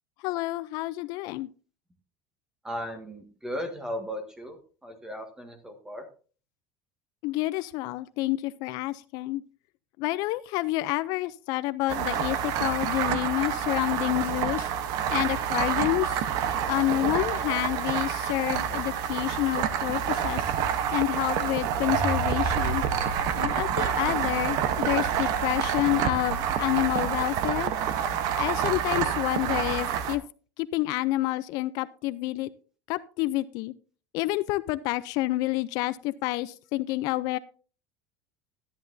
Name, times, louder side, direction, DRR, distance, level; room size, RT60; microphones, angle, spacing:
voice 1, 0.2-1.5 7.2-9.4 10.0-14.7 15.1-16.3 16.7-20.4 20.9-22.8 23.4-27.7 28.4-30.2 30.6-32.5 32.9-33.7 34.1-37.4, left 18 dB, 55° left, 15 dB, 0.4 m, -28 dB
voice 2, 2.6-4.6 4.8-6.0, equal, 5° right, 6 dB, 1.7 m, -36 dB
sound 1, 11.9-30.2, right 8 dB, 55° right, 0.9 m, -28 dB
sound 2, 21.9-28.1, right 1 dB, 10° left, 3.2 m, -37 dB
13.0 x 10.5 x 2.7 m, 0.38 s
cardioid pair, 150°, 8 cm